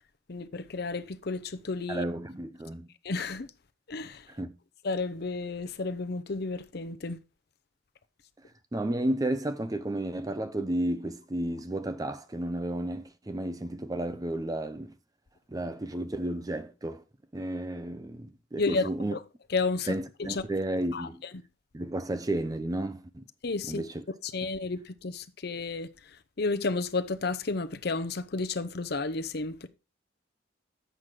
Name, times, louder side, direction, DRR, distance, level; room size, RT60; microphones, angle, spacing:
voice 1, 0.3-2.1 3.0-3.5 3.9-4.3 4.8-7.2 18.6-19.2 19.5-20.4 20.9-21.3 23.4-23.8 24.2-29.7, left 3 dB, 55° left, 0.7 m, -32 dB
voice 2, 1.9-2.9 4.3-4.5 8.7-14.9 15.5-17.0 17.3-19.1 19.9-21.2 21.7-23.2 23.7-24.0, right 1 dB, 20° right, 0.5 m, -32 dB
7.7 x 6.1 x 4.9 m
head